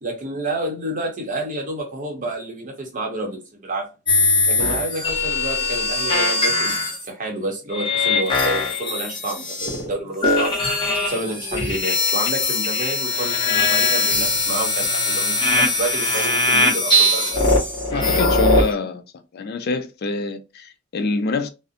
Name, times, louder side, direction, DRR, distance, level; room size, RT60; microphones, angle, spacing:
voice 1, 0.0-3.9 4.5-10.6 11.0-17.5, right 1 dB, 40° right, 0.8 m, -29 dB
sound 1, 4.1-7.0 7.7-9.9 10.2-18.7, left 2 dB, 25° left, 0.7 m, -20 dB
voice 2, 17.9-19.0 19.3-21.5, left 3 dB, 50° left, 0.4 m, -26 dB
2.5 x 2.0 x 2.6 m
head